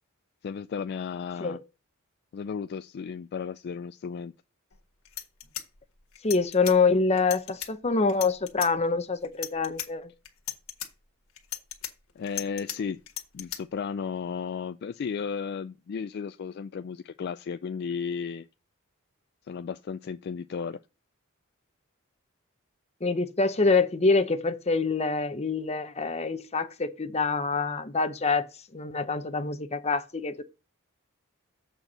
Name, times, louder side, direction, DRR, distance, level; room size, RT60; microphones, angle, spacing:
voice 1, 0.4-1.6 2.3-4.3 12.2-13.0 13.3-18.5 19.4-20.8, left 6 dB, 50° left, 0.3 m, -34 dB
sound 1, 4.7-4.8 5.1-6.8 7.2-7.7 8.1-8.7 9.2-9.9 10.3-10.9 11.4-12.8 13.1-13.6, left 11 dB, 80° left, 1.6 m, -36 dB
voice 2, 6.2-10.1 23.0-28.4 28.7-30.3, left 4 dB, 30° left, 0.8 m, -25 dB
7.8 x 4.5 x 6.5 m
head